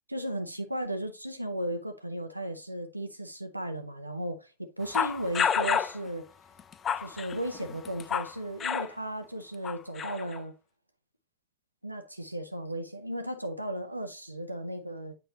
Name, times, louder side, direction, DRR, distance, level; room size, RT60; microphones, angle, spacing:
voice 1, 0.1-6.3 7.0-10.5 11.8-15.1, right 1 dB, 90° right, 0.6 m, -35 dB
sound 1, 4.9-6.0 6.6-8.3 8.6-8.9 9.6-10.4, left 7 dB, 25° left, 0.5 m, -29 dB
8.2 x 5.2 x 2.9 m
figure-of-eight pair, 90°, 0 cm